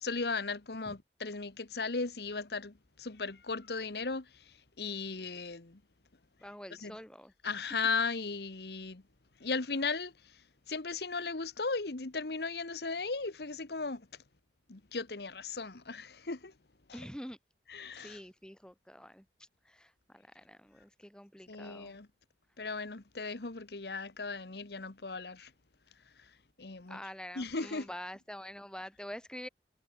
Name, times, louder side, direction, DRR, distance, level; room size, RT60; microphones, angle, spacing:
voice 1, 0.0-5.8 6.7-6.9 7.4-9.0 9.4-10.1 10.7-14.0 14.7-16.5 16.9-17.0 17.7-18.2 21.5-22.1 22.6-25.5 26.6-27.0 27.3-27.9, left 4 dB, 70° left, 1.2 m, -36 dB
voice 2, 6.4-7.3 16.9-17.4 17.9-19.3 19.7-22.0 26.9-29.5, equal, 5° left, 7.0 m, -46 dB
head